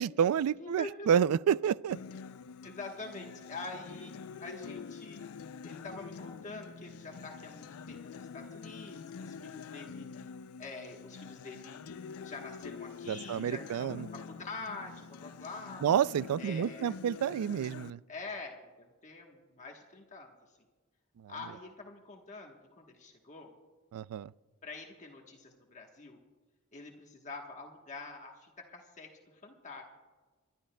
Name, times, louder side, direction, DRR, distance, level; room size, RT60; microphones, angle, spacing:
voice 1, 0.0-2.0 13.1-14.0 15.8-18.0 23.9-24.3, right 8 dB, 80° right, 0.3 m, -29 dB
voice 2, 0.6-1.1 2.6-5.2 5.6-10.3 10.6-15.9 16.4-17.0 18.1-20.6 21.3-23.5 24.6-26.2 26.7-29.8, left 3 dB, 35° left, 1.2 m, -46 dB
Acoustic guitar, 1.9-17.9, left 6 dB, 75° left, 0.4 m, -46 dB
29.0 x 12.5 x 2.2 m
head